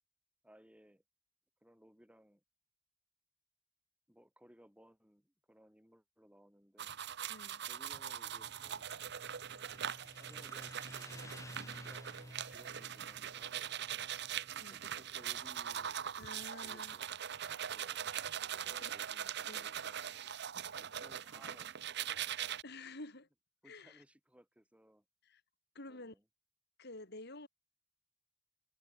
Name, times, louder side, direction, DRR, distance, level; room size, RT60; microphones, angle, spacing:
voice 1, 0.4-1.0 1.6-2.4 4.1-7.0 7.6-8.9 10.2-14.1 14.7-17.1 17.7-18.1 18.6-20.0 20.8-22.4 23.6-25.0 25.9-26.2, equal, 5° right, 6.3 m, -63 dB
sound 1, 6.8-22.6, right 9 dB, 60° right, 0.9 m, -42 dB
voice 2, 7.3-7.6 14.6-14.8 16.2-16.9 18.8-18.9 19.5-19.7 22.6-23.3 23.6-24.0 25.2-25.4 25.7-26.1 26.8-27.5, left 2 dB, 55° left, 5.2 m, -50 dB
Motorcycle, 7.9-19.0, left 1 dB, 15° left, 7.4 m, -56 dB
head